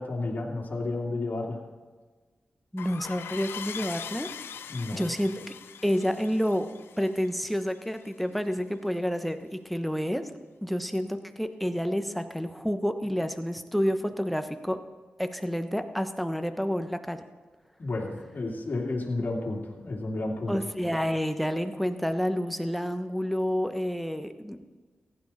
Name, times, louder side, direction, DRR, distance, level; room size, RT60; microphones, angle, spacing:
voice 1, 0.0-1.6 4.7-5.1 17.8-20.6, left 2 dB, 50° left, -1 dB, 2.7 m, -31 dB
voice 2, 2.7-4.3 4.9-5.5 5.8-6.7 7.0-14.8 15.2-17.2 20.5-24.8, equal, ahead, 8 dB, 1.1 m, -29 dB
sound 1, 2.8-8.1, left 8 dB, 90° left, 0.4 m, -42 dB
15.0 x 10.5 x 4.2 m, 1.4 s
cardioid pair, 50°, 4 cm